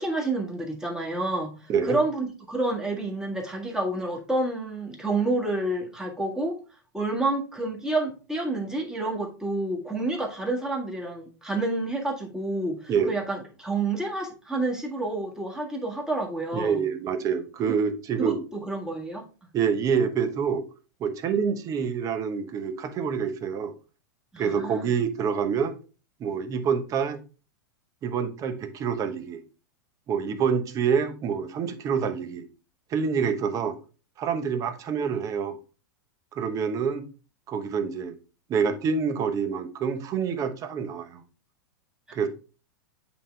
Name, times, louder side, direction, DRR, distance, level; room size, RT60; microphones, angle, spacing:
voice 1, 0.0-6.6 6.9-16.8 17.7-17.8 18.2-19.2 24.3-24.9 42.1-42.3, right 2 dB, 5° right, 1.7 m, -29 dB
voice 2, 16.5-18.4 19.5-20.6 21.0-23.7 24.4-25.7 26.2-27.2 28.0-29.4 30.1-32.4 32.9-33.7 34.2-35.6 36.4-37.0 37.5-38.1 38.5-41.2 42.1-42.3, right 6 dB, 30° right, 1.0 m, -27 dB
8.3 x 3.8 x 3.3 m
hypercardioid pair, 130°, 11 cm